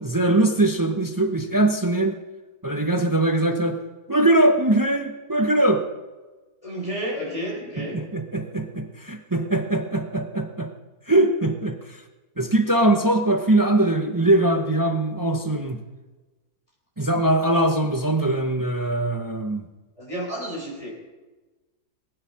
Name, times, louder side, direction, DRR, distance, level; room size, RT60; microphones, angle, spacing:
voice 1, 0.0-2.2 2.6-3.8 4.1-5.8 7.8-10.7 11.1-12.0 12.4-15.8 17.0-19.6, right 1 dB, 25° right, 6 dB, 0.4 m, -21 dB
voice 2, 6.6-8.0 20.0-20.9, equal, 20° left, -3 dB, 4.0 m, -31 dB
20.0 x 9.8 x 5.8 m, 1.2 s
omnidirectional pair, 1.8 m